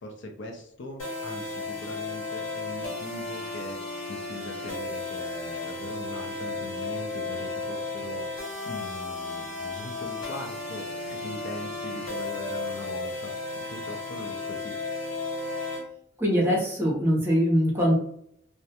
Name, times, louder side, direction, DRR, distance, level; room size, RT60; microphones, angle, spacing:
voice 1, 0.0-8.3 8.6-14.7, left 1 dB, 65° left, 3 dB, 0.5 m, -41 dB
sound 1, 1.0-15.8, left 3 dB, 80° left, 0.9 m, -34 dB
voice 2, 16.2-17.9, equal, 10° right, -4 dB, 0.8 m, -22 dB
2.3 x 2.1 x 2.8 m, 0.69 s
head